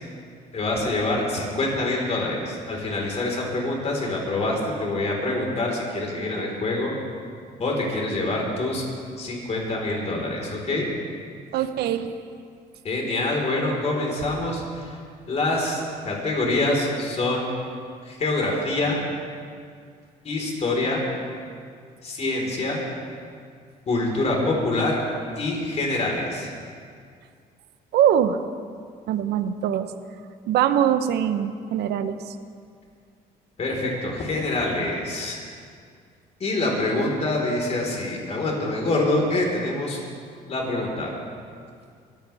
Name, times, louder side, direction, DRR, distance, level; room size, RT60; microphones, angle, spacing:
voice 1, 0.5-6.9 7.6-8.9 9.2-10.9 12.8-15.0 15.3-17.5 18.0-19.0 20.2-21.0 22.0-22.8 23.9-25.0 25.4-26.5 33.6-35.4 36.4-40.0 40.5-41.1, left 2 dB, 40° left, -1 dB, 4.4 m, -25 dB
voice 2, 11.5-12.1 27.9-28.4 29.1-29.9 30.5-32.4, right 10 dB, 75° right, 10 dB, 0.9 m, -22 dB
22.5 x 15.5 x 3.5 m, 2.2 s
cardioid pair, 110°, 17 cm